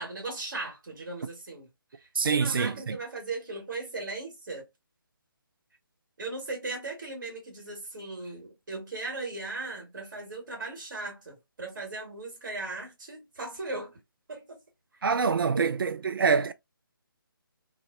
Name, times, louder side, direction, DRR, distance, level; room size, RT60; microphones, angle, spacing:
voice 1, 0.0-1.7 2.0-4.7 6.2-14.0 14.3-14.6 15.5-15.6, right 3 dB, 60° right, 1.4 m, -38 dB
voice 2, 2.2-3.0 15.0-16.5, right 5 dB, 75° right, 0.4 m, -25 dB
2.5 x 2.2 x 2.4 m
figure-of-eight pair, 150°, 12 cm